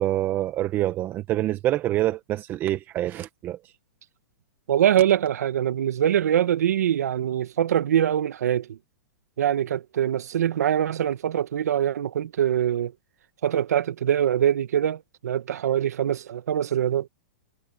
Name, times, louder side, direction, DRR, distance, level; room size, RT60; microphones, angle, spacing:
voice 1, 0.0-3.6, right 14 dB, 25° right, 1.1 m, -26 dB
voice 2, 4.7-8.8 9.4-12.9 13.4-17.1, right 10 dB, 75° right, 1.5 m, -23 dB
hypercardioid pair, 155°, 9 cm